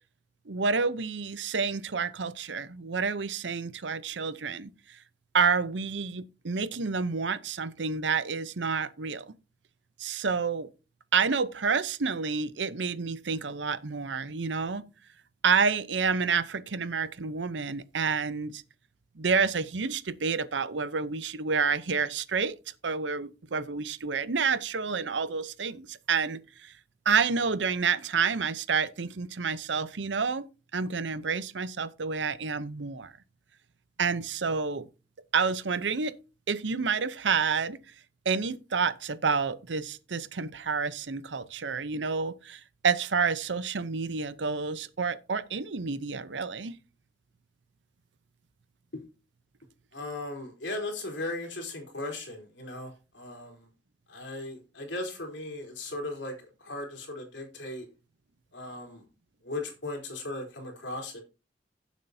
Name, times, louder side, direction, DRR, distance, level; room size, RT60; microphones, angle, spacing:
voice 1, 0.5-5.0 5.3-9.3 10.0-10.7 11.1-14.8 15.4-18.6 19.2-22.6 22.8-26.7 27.1-30.5 30.7-33.1 34.0-34.9 35.3-36.1 36.5-37.8 38.2-46.7, right 5 dB, 80° right, 0.8 m, -29 dB
voice 2, 49.9-53.7 54.1-57.9 58.5-59.0 59.4-61.2, left 2 dB, 80° left, 3.6 m, -37 dB
16.0 x 7.4 x 2.7 m
head